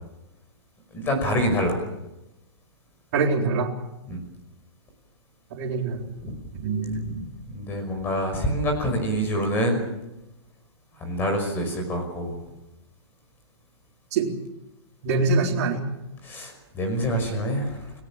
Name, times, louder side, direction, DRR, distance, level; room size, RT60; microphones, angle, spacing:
voice 1, 0.9-1.8 4.1-4.2 6.2-6.6 7.5-9.8 11.0-12.4 16.2-17.9, equal, 15° left, 5 dB, 5.6 m, -26 dB
voice 2, 3.1-3.7 5.5-6.1 6.5-7.2 14.1-14.3 15.0-15.8, right 4 dB, 35° right, -3 dB, 4.1 m, -24 dB
29.5 x 18.5 x 7.5 m, 0.96 s
hypercardioid pair, 170°, 14 cm